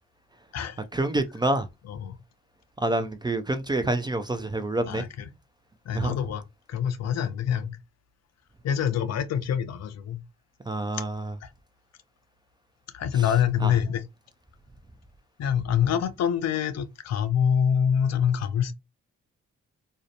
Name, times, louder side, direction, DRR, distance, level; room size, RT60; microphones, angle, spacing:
voice 1, 0.9-1.7 2.8-5.0 5.9-6.1 10.7-11.3 13.6-13.7, right 2 dB, 15° right, 0.4 m, -27 dB
voice 2, 1.8-2.2 4.9-5.3 5.9-7.8 8.6-10.2 10.9-11.0 11.4-11.5 12.9-14.0 15.4-18.7, left 8 dB, 60° left, 0.5 m, -26 dB
2.5 x 2.1 x 2.7 m
supercardioid pair, 55°, 29 cm